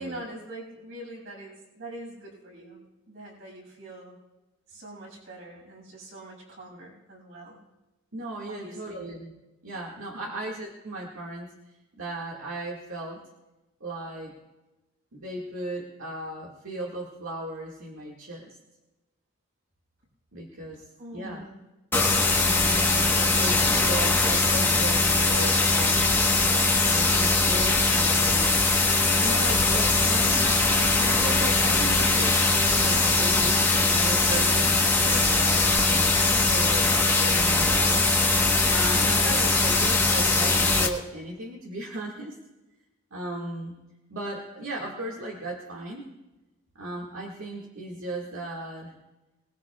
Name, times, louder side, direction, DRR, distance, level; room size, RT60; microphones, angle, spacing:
voice 1, 0.0-4.2 4.7-7.6 8.4-9.0 10.1-10.3 21.0-21.6, right 1 dB, 60° right, -3 dB, 6.6 m, -43 dB
voice 2, 8.1-9.3 9.6-11.5 12.0-13.2 13.8-14.4 15.1-18.6 20.3-21.4 22.4-26.1 26.8-28.7 29.2-38.1 38.7-42.4 43.1-43.7 44.1-46.1 46.8-48.9, right 1 dB, 85° right, -3 dB, 2.0 m, -36 dB
sound 1, 21.9-40.9, left 3 dB, 10° left, 1.2 m, -21 dB
25.0 x 20.0 x 2.4 m, 1.1 s
head